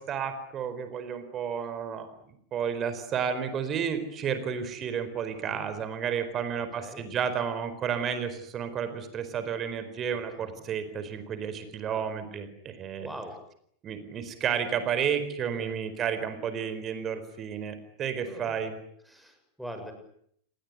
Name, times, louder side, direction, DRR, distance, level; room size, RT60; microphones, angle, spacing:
voice 1, 0.0-13.1 13.8-18.7, right 7 dB, 30° right, 10 dB, 4.4 m, -32 dB
voice 2, 13.0-13.4 15.5-15.7 18.2-18.6 19.1-19.9, equal, ahead, 6 dB, 6.9 m, -43 dB
29.0 x 20.5 x 9.7 m, 0.69 s
figure-of-eight pair, 90°, 0 cm